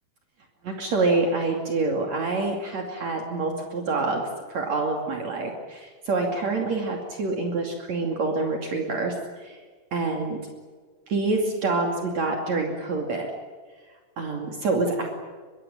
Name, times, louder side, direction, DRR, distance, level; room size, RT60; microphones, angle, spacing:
voice 1, 0.6-9.6 9.9-10.4 11.1-13.3 14.2-15.1, right 3 dB, 55° right, 2 dB, 3.8 m, -26 dB
23.5 x 23.0 x 9.0 m, 1.5 s
omnidirectional pair, 3.8 m